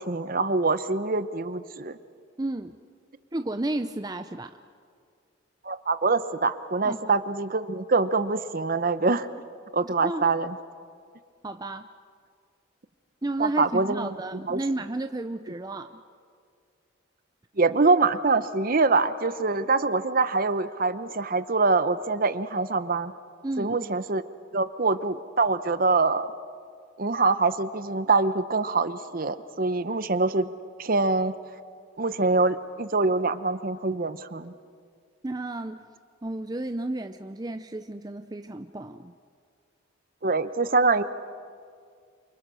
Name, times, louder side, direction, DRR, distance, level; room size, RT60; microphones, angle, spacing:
voice 1, 0.0-2.0 5.6-9.3 9.7-10.5 13.4-14.1 14.5-14.6 17.6-23.1 23.6-24.2 24.5-26.3 27.0-30.5 30.8-31.3 32.0-34.5 40.2-41.0, right 3 dB, 45° right, 13 dB, 0.8 m, -24 dB
voice 2, 2.4-2.8 3.3-4.6 6.8-7.1 9.8-10.4 11.4-11.9 13.2-16.0 23.4-23.9 35.2-35.9 36.2-39.1, right 2 dB, 20° right, 8 dB, 0.5 m, -32 dB
29.0 x 25.0 x 6.3 m, 2.2 s
head